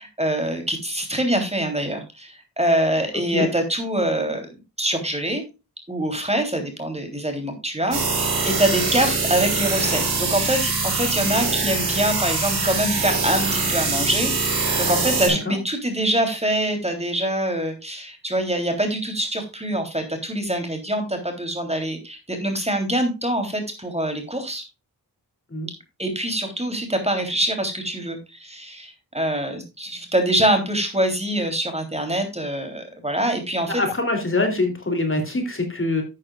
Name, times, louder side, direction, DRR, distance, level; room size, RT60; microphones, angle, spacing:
voice 1, 0.0-5.4 5.9-24.6 26.0-33.8, right 1 dB, 15° right, 5 dB, 3.3 m, -24 dB
sound 1, 7.9-15.3, right 4 dB, 85° right, 4.2 m, -23 dB
voice 2, 33.7-36.0, left 2 dB, 35° left, 4 dB, 3.1 m, -24 dB
12.0 x 8.6 x 2.4 m, 0.27 s
cardioid pair, 50°, 37 cm